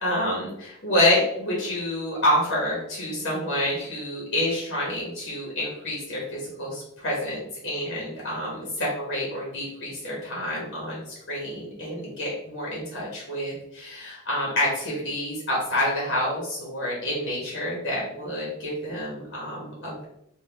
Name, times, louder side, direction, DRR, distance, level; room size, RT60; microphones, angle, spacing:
voice 1, 0.0-20.0, left 1 dB, 50° left, -4 dB, 1.3 m, -28 dB
4.0 x 2.6 x 3.4 m, 0.79 s
head